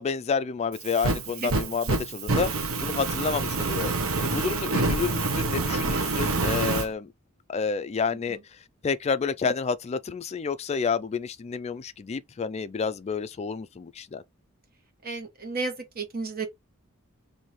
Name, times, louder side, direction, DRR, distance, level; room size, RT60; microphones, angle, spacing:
voice 1, 0.0-2.5 2.8-3.9 4.2-7.1 7.5-8.4 8.8-14.2, left 5 dB, 30° left, 0.3 m, -29 dB
Fire, 0.7-6.9, right 3 dB, 75° right, 0.8 m, -27 dB
voice 2, 15.0-16.5, right 3 dB, 45° right, 1.3 m, -33 dB
3.1 x 2.7 x 4.2 m
head